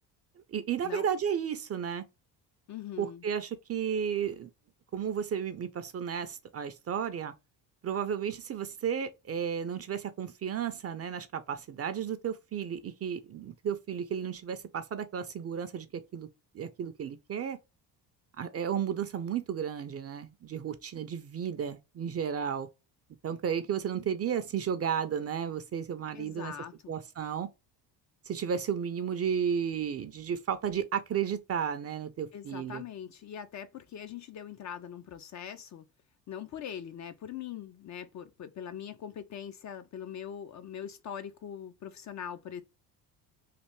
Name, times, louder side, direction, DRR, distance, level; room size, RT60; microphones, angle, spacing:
voice 1, 0.5-2.0 3.0-4.5 4.9-7.3 7.8-16.3 16.5-17.6 18.4-22.7 23.2-26.5 26.9-27.5 28.3-32.8, right 8 dB, 30° right, 0.5 m, -33 dB
voice 2, 2.7-3.2 26.1-27.0 32.3-35.9 36.3-42.6, left 9 dB, 40° left, 0.4 m, -42 dB
3.3 x 2.4 x 3.1 m
supercardioid pair, 65°, 48 cm